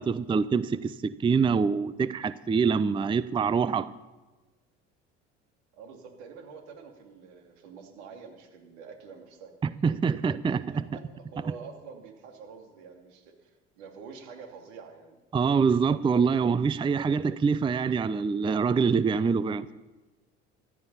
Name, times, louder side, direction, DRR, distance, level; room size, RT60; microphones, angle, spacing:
voice 1, 0.0-4.0 9.6-10.9 11.4-11.5 15.3-19.7, right 5 dB, 15° right, 17 dB, 0.5 m, -25 dB
voice 2, 5.7-9.5 10.7-11.0 11.3-15.2, right 5 dB, 75° right, 3 dB, 2.9 m, -47 dB
15.0 x 12.0 x 5.7 m, 1.2 s
hypercardioid pair, 70°, 33 cm